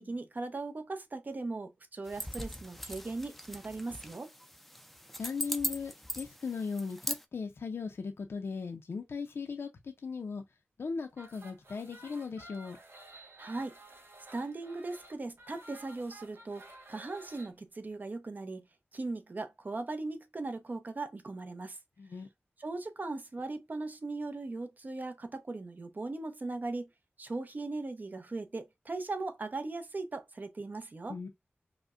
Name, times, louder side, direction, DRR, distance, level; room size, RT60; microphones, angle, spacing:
voice 1, 0.0-4.3 13.4-13.8 14.3-18.7 18.9-21.8 22.6-26.9 27.2-31.2, right 3 dB, 45° right, 0.6 m, -38 dB
sound 1, 2.1-7.2, equal, 5° left, 0.4 m, -40 dB
voice 2, 5.2-10.4 10.8-12.8 22.0-22.3 31.1-31.3, left 5 dB, 70° left, 0.4 m, -38 dB
sound 2, 11.1-17.5, right 1 dB, 75° right, 0.9 m, -53 dB
4.9 x 2.1 x 2.4 m
wide cardioid pair, 85°, 4 cm